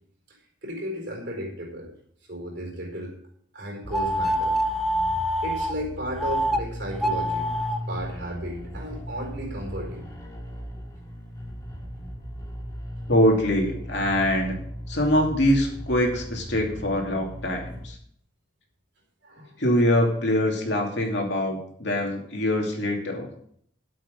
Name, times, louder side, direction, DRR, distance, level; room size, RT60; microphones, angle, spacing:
voice 1, 0.3-1.9 2.3-3.1 3.5-4.8 5.4-7.5 7.9-10.1 19.2-19.5, equal, 60° right, 1 dB, 4.5 m, -34 dB
sound 1, 3.8-17.9, equal, 20° left, 2.0 m, -37 dB
sound 2, 3.9-5.7 6.2-6.6 6.9-7.8, equal, ahead, 0.5 m, -25 dB
voice 2, 13.1-14.6 14.9-18.0 19.6-23.3, left 1 dB, 60° left, 1 dB, 2.8 m, -23 dB
13.0 x 8.2 x 5.2 m, 0.66 s
head